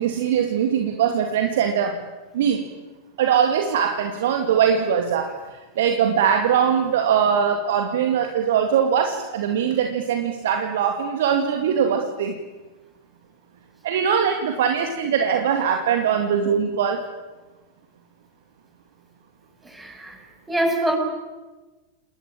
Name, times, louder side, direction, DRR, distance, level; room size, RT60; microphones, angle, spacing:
voice 1, 0.0-2.0 2.3-2.6 3.2-12.4 13.8-17.0, right 8 dB, 55° right, 5 dB, 2.4 m, -21 dB
voice 2, 19.6-20.2 20.5-21.0, right 1 dB, 10° right, 3 dB, 7.4 m, -24 dB
29.5 x 19.5 x 9.0 m, 1.2 s
figure-of-eight pair, 90°, 0 cm